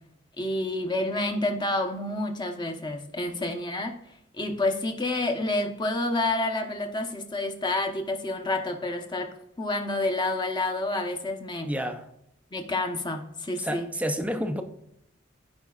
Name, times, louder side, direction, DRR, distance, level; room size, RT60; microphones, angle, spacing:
voice 1, 0.4-3.9 4.3-9.3 9.6-11.7 12.5-13.9, left 2 dB, 20° left, 0.9 m, -29 dB
voice 2, 11.6-12.0 13.6-14.6, equal, 5° right, 0.5 m, -29 dB
15.0 x 5.1 x 2.4 m
head